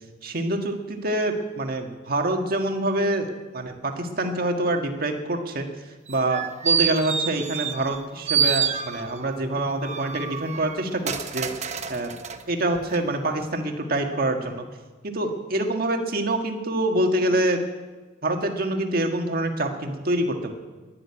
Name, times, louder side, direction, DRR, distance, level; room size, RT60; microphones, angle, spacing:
voice 1, 0.2-3.3 3.5-5.7 6.1-12.2 12.5-14.6 15.0-17.6 18.2-20.5, right 1 dB, 55° right, 4 dB, 1.7 m, -26 dB
sound 1, 6.1-8.0 8.3-9.3 9.8-12.4 12.9-13.0, right 7 dB, 40° right, 0.9 m, -27 dB
11.5 x 10.5 x 9.8 m, 1.3 s
head